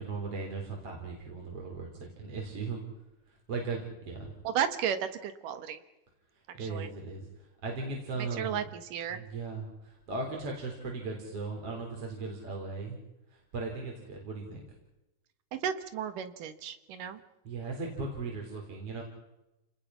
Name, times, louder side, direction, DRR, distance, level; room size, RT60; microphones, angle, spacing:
voice 1, 0.0-2.8 3.5-4.3 6.5-7.2 7.6-8.6 9.1-13.0 13.5-14.6 17.4-19.0, right 3 dB, 45° right, 0 dB, 4.7 m, -37 dB
voice 2, 4.4-5.8 6.6-6.9 8.2-9.2 15.5-17.2, right 8 dB, 85° right, 11 dB, 3.1 m, -34 dB
29.5 x 19.5 x 5.8 m, 0.96 s
omnidirectional pair, 3.6 m